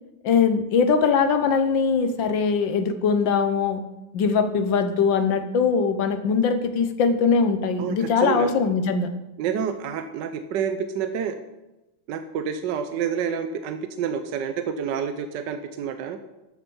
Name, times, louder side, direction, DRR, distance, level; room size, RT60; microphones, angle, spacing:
voice 1, 0.2-3.8 4.1-9.1, left 5 dB, 70° left, 9 dB, 1.6 m, -21 dB
voice 2, 7.8-8.5 9.4-11.4 12.1-16.2, right 7 dB, 65° right, 8 dB, 1.3 m, -28 dB
14.0 x 8.0 x 5.5 m, 0.99 s
omnidirectional pair, 2.3 m